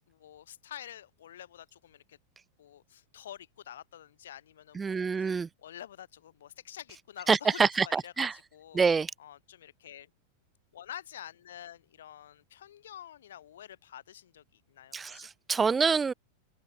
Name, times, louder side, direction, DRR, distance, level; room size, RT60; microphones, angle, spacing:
voice 1, 0.1-2.2 2.6-5.3 5.6-8.8 9.2-10.1 10.7-15.3, left 11 dB, 60° left, 1.6 m, -48 dB
voice 2, 4.7-5.5 7.3-8.3 8.7-9.1 14.9-16.1, right 5 dB, 15° right, 0.9 m, -26 dB
open air
figure-of-eight pair, 90°, 0 cm